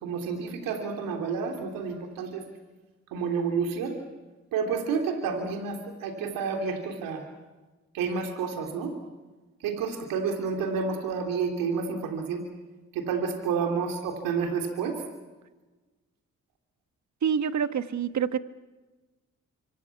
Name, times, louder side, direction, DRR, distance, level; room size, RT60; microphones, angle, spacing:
voice 1, 0.0-2.4 3.1-3.9 4.5-7.2 7.9-9.0 9.6-12.4 12.9-15.0, right 5 dB, 90° right, 4 dB, 3.3 m, -30 dB
voice 2, 17.2-18.4, right 7 dB, 60° right, 11 dB, 1.5 m, -26 dB
26.5 x 24.5 x 6.0 m, 1.2 s
supercardioid pair, 55°, 33 cm